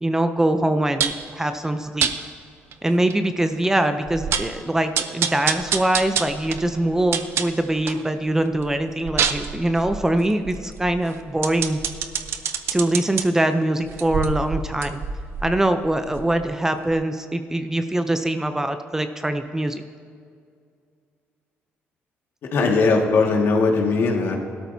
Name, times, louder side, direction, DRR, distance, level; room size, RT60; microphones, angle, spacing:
voice 1, 0.0-2.1 2.8-11.8 12.7-15.0 15.4-19.8, right 1 dB, 10° right, 8 dB, 0.5 m, -23 dB
sound 1, 1.0-1.3 2.0-2.2 2.7-2.8 3.1-3.2 3.6-3.7 4.1-4.6 4.9-8.0 8.4-13.2 13.8-16.5 16.9-17.0, right 7 dB, 65° right, 0.7 m, -27 dB
voice 2, 22.5-24.4, left 4 dB, 65° left, 1 dB, 1.9 m, -19 dB
17.0 x 12.5 x 2.8 m, 2.3 s
cardioid pair, 110°, 4 cm